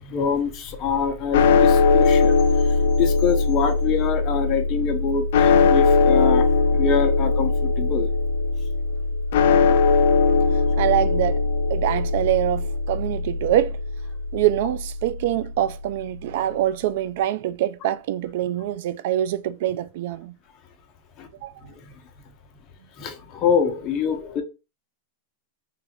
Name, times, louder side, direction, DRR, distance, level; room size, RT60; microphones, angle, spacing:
voice 1, 0.0-2.4 3.0-6.4 6.7-8.1 21.2-21.3 21.6-21.9 23.0-24.4, left 6 dB, 30° left, 0.8 m, -25 dB
sound 1, 1.3-15.6, left 4 dB, 65° left, 0.4 m, -20 dB
voice 2, 10.8-11.4 11.7-13.8 14.3-20.3 21.4-21.5, right 12 dB, 60° right, 0.3 m, -24 dB
3.3 x 2.5 x 4.3 m
supercardioid pair, 155°, 0 cm